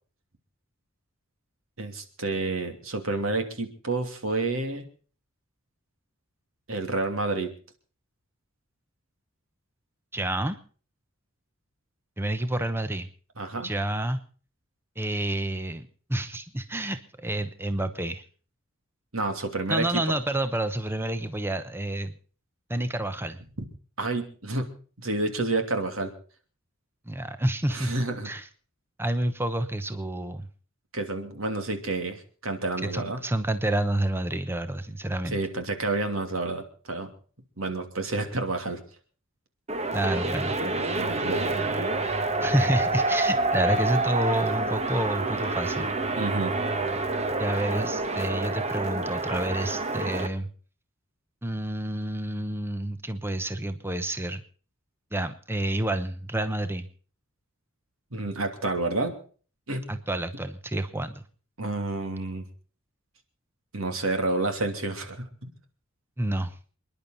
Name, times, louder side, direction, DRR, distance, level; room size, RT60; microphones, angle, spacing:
voice 1, 1.8-4.8 6.7-7.5 13.4-13.7 19.1-20.2 24.0-26.1 27.7-28.3 30.9-33.3 35.3-37.1 37.6-38.8 41.0-41.6 46.2-46.5 58.1-59.2 59.7-59.9 61.6-62.4 63.7-65.5, right 2 dB, 75° right, 6 dB, 2.9 m, -29 dB
voice 2, 10.1-10.6 12.2-13.1 13.6-14.2 15.0-18.2 19.7-22.1 22.7-23.4 27.1-27.9 28.2-28.5 29.0-30.5 32.8-35.4 39.9-40.6 42.4-45.9 47.4-50.5 51.4-54.4 55.1-56.9 59.9-61.2 66.2-66.6, right 1 dB, 10° right, 10 dB, 0.9 m, -29 dB
sound 1, 39.7-50.3, right 2 dB, 30° right, 1.3 m, -27 dB
28.0 x 11.0 x 4.0 m, 0.41 s
head